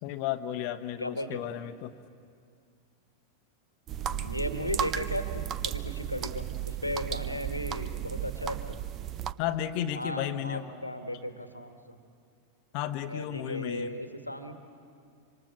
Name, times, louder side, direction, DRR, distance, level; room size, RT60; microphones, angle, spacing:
voice 1, 0.0-1.9 9.4-10.6 12.7-13.9, left 11 dB, 45° left, 10 dB, 1.0 m, -33 dB
voice 2, 1.0-1.4 4.0-8.8 9.9-12.0 13.1-14.5, left 1 dB, 85° left, 7 dB, 1.6 m, -36 dB
sound 1, 3.9-9.3, right 10 dB, 30° right, 0.7 m, -34 dB
26.5 x 25.0 x 7.4 m, 2.3 s
figure-of-eight pair, 90°, 0 cm